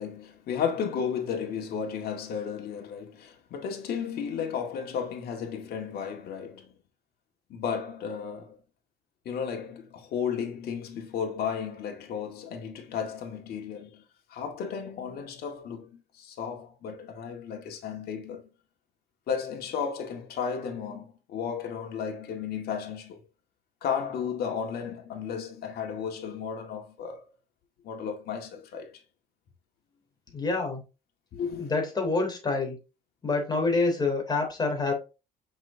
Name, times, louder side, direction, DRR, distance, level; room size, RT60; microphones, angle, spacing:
voice 1, 0.0-6.7 7.5-8.6 9.3-14.0 14.3-18.5 19.3-23.2 23.8-27.2 27.8-28.9 31.3-31.7, left 7 dB, 65° left, 2.0 m, -34 dB
voice 2, 30.3-30.8 31.6-32.8 33.2-34.9, left 3 dB, 25° left, 3.3 m, -27 dB
6.1 x 6.0 x 2.9 m
cardioid pair, 110°, 17 cm